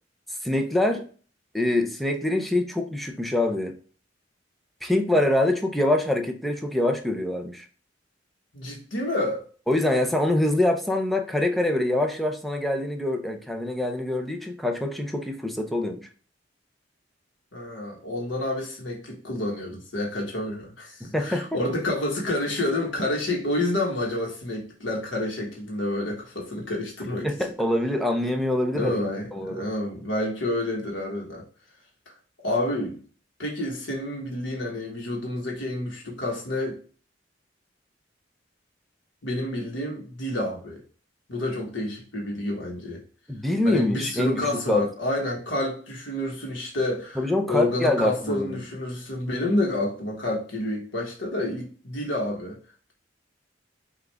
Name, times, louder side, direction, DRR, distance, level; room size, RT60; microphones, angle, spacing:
voice 1, 0.4-1.0 1.5-3.7 4.8-7.7 9.7-16.0 21.1-21.5 27.2-29.0 29.3-29.7 43.3-44.8 47.2-48.6, left 1 dB, ahead, 0.6 m, -25 dB
voice 2, 8.5-9.4 17.5-27.3 28.7-31.4 32.4-33.0 33.4-36.8 39.2-40.8 41.3-43.0 43.6-47.2 47.5-52.6, left 1 dB, 85° left, 1.3 m, -29 dB
5.8 x 2.5 x 3.3 m
head